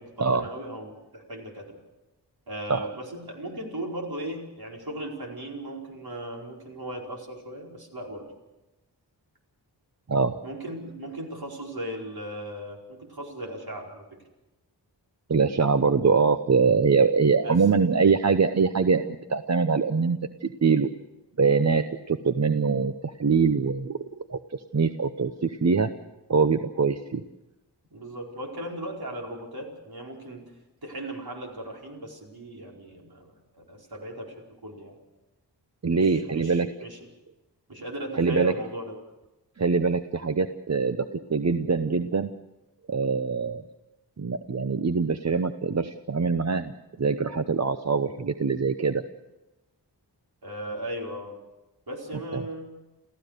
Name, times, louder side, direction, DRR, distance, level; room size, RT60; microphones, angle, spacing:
voice 1, 0.0-1.8 2.5-8.3 10.4-14.1 17.4-17.6 27.9-30.5 30.8-35.0 35.9-37.0 37.7-39.0 50.4-51.4 51.9-52.7, right 1 dB, 60° right, -1 dB, 4.9 m, -37 dB
voice 2, 15.3-19.0 19.3-20.9 21.4-24.0 24.3-25.9 26.3-27.2 35.8-36.7 38.2-38.5 39.6-42.3 42.9-43.6 44.2-46.7 47.0-49.0 52.3-52.5, right 5 dB, 40° right, 9 dB, 0.8 m, -23 dB
28.5 x 15.0 x 6.7 m, 1.0 s
wide cardioid pair, 110°, 42 cm